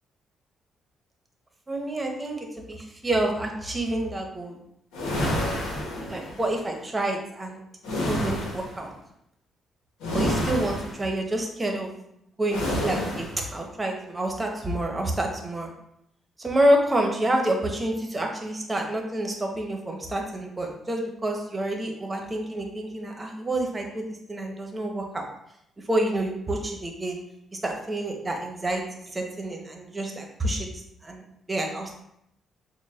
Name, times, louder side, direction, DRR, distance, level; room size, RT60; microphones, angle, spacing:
voice 1, 1.7-4.6 6.1-7.6 8.0-8.9 10.1-11.9 12.4-15.7 16.4-25.3 25.8-27.2 27.6-30.7 31.0-32.0, right 1 dB, 25° right, 2 dB, 0.9 m, -28 dB
sound 1, 4.9-6.5 7.8-8.8 10.0-11.1 12.5-13.4, left 1 dB, 85° left, 0.9 m, -29 dB
6.3 x 2.2 x 2.4 m, 0.76 s
supercardioid pair, 60°, 0 cm